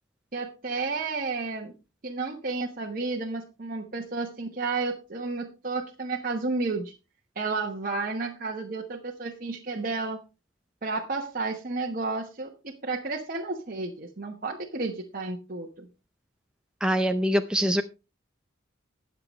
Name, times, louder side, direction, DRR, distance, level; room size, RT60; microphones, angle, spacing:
voice 1, 0.3-1.7 2.0-6.9 7.4-10.2 10.8-15.9, right 3 dB, 45° right, 0 dB, 1.1 m, -32 dB
voice 2, 16.8-17.8, equal, 5° right, 6 dB, 0.5 m, -24 dB
20.0 x 6.8 x 3.1 m, 0.29 s
head